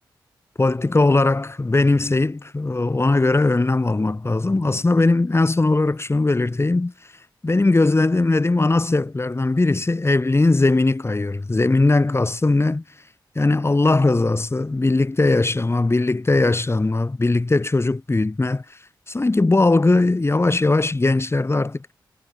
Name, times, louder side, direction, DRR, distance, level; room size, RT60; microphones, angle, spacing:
voice 1, 0.6-6.9 7.4-12.8 13.4-18.8 19.1-21.9, left 2 dB, 30° left, 5.9 m, -19 dB
cardioid pair, 55°, 8 cm